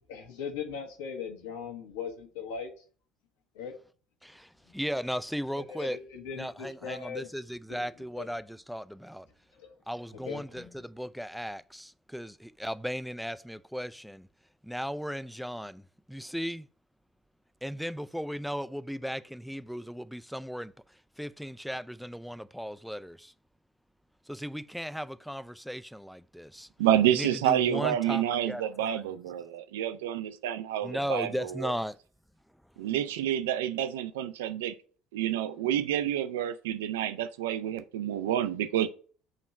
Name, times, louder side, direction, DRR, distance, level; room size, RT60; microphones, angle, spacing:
voice 1, 0.1-2.7 3.5-3.7 5.6-7.3 7.8-7.9 8.2-8.3 9.6-9.7 10.2-10.7, left 6 dB, 65° left, 1.1 m, -39 dB
voice 2, 4.2-6.0 6.3-9.3 9.9-14.3 14.6-16.7 17.6-23.3 24.3-26.7 27.1-29.0 30.8-32.0, equal, ahead, 0.3 m, -36 dB
voice 3, 26.8-31.7 32.8-34.8 35.1-38.9, right 11 dB, 65° right, 0.4 m, -28 dB
6.4 x 3.0 x 5.7 m
figure-of-eight pair, 60°, 0 cm